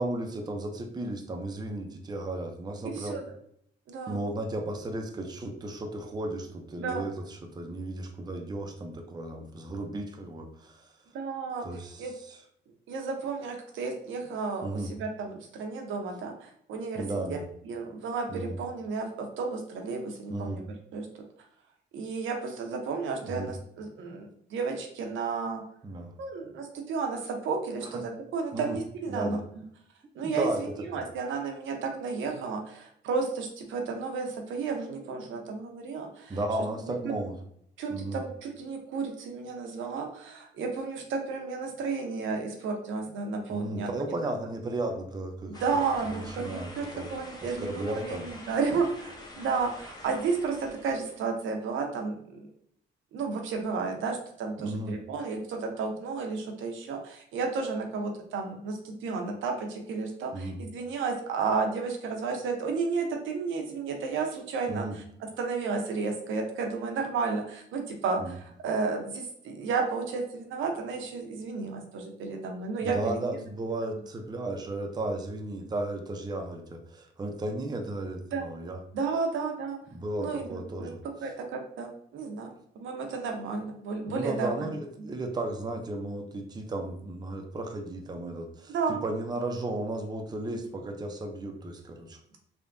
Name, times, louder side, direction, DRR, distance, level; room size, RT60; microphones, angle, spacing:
voice 1, 0.0-3.2 4.1-10.9 11.6-12.4 14.6-14.9 16.9-17.5 18.3-18.6 20.3-20.6 23.2-23.5 25.8-26.1 27.8-28.0 28.5-28.8 29.1-29.4 30.2-30.6 30.9-31.0 36.3-37.3 37.9-38.2 43.5-45.6 46.0-47.1 47.4-48.3 54.6-55.0 60.3-60.6 64.7-65.0 68.2-68.4 72.8-78.8 79.9-81.0 84.1-92.2, right 2 dB, 20° right, 4 dB, 0.5 m, -34 dB
voice 2, 2.8-3.2 3.9-4.2 6.8-7.1 11.1-11.7 12.0-12.1 12.9-17.4 17.6-20.6 20.9-21.1 21.9-25.6 26.2-29.4 30.1-36.4 37.8-44.1 45.5-52.5 53.1-65.0 65.4-73.2 78.3-78.5 78.9-79.8 80.2-80.9 81.2-84.7 85.0-85.1 88.7-89.0, right 4 dB, 75° right, 3 dB, 0.7 m, -32 dB
sound 1, 45.5-51.3, left 1 dB, 20° left, 0.7 m, -46 dB
3.4 x 2.2 x 2.5 m, 0.68 s
cardioid pair, 90°, 20 cm